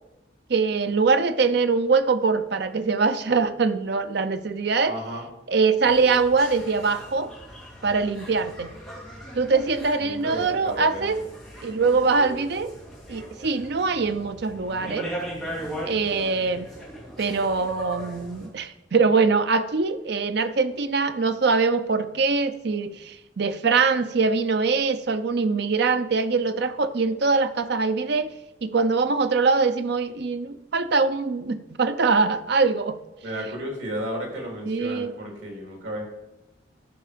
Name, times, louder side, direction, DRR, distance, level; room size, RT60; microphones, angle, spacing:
voice 1, 0.5-4.9 5.5-7.3 7.8-8.7 9.4-11.2 11.6-12.7 13.1-15.1 15.8-16.7 17.2-28.3 28.6-33.0 34.7-35.1, right 4 dB, 60° right, 11 dB, 0.6 m, -23 dB
voice 2, 4.8-5.3 10.0-11.2 33.2-36.0, equal, 80° right, 1 dB, 3.2 m, -33 dB
sound 1, 5.8-18.5, equal, ahead, 2.5 m, -38 dB
13.5 x 5.5 x 5.1 m, 0.97 s
head